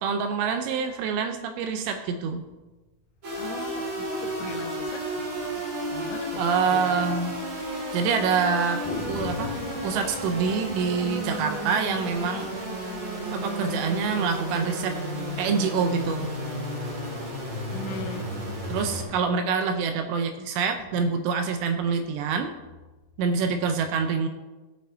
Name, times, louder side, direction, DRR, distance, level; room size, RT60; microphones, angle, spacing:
voice 1, 0.0-2.5 6.4-7.4 7.9-9.6 9.8-12.5 13.3-15.0 15.4-16.3 18.7-22.5 23.2-24.3, right 5 dB, 80° right, 2.7 m, -26 dB
sound 1, 3.2-19.0, right 1 dB, 45° right, 3.0 m, -32 dB
voice 2, 3.3-7.4 17.2-18.3 20.8-20.9, left 5 dB, 90° left, 3.0 m, -40 dB
sound 2, 6.1-6.2 6.5-6.6 6.9-7.0 7.6-8.1 8.8-13.6, left 3 dB, 65° left, 2.4 m, -41 dB
18.0 x 6.3 x 2.7 m
omnidirectional pair, 5.3 m